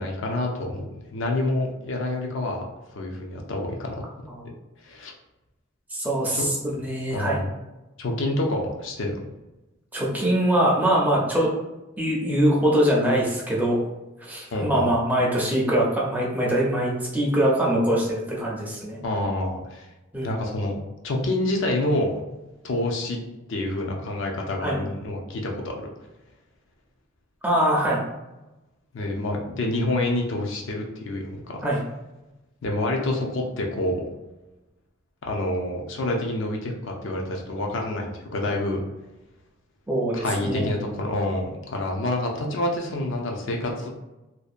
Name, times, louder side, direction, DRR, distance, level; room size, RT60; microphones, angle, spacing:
voice 1, 0.0-2.6 2.9-4.0 4.8-5.1 6.3-6.5 7.1-7.5 8.0-9.2 14.5-14.9 19.0-19.9 20.2-20.8 21.0-22.1 22.6-23.2 23.5-25.8 28.9-31.6 32.6-34.1 35.2-38.8 40.1-43.9, left 1 dB, 60° left, 1 dB, 0.4 m, -27 dB
voice 2, 5.9-7.4 9.9-11.5 12.0-13.8 14.2-19.0 20.1-20.3 24.6-24.8 27.4-28.0 31.6-31.8 39.9-40.7, right 1 dB, 10° right, -4 dB, 0.4 m, -23 dB
2.7 x 2.1 x 2.4 m, 1.0 s
head